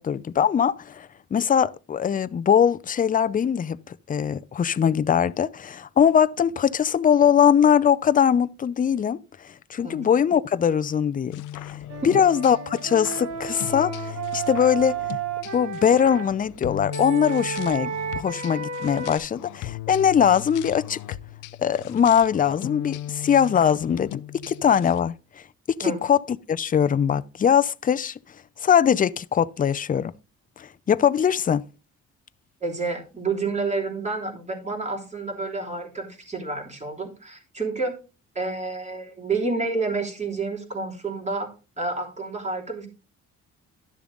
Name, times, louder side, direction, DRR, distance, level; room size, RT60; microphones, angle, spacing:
voice 1, 0.0-9.2 9.7-11.8 12.0-15.0 15.5-21.0 21.6-25.1 25.8-28.2 28.6-30.1 30.6-31.6, left 8 dB, 30° left, 0.5 m, -21 dB
sound 1, 11.3-25.0, left 13 dB, 85° left, 0.6 m, -38 dB
Wind instrument woodwind instrument, 11.9-16.3 16.9-19.2, right 6 dB, 60° right, 1.9 m, -32 dB
voice 2, 32.6-37.9 38.3-41.5 41.8-42.9, right 3 dB, 25° right, 3.2 m, -29 dB
11.5 x 6.9 x 3.8 m
cardioid pair, 90°, 30 cm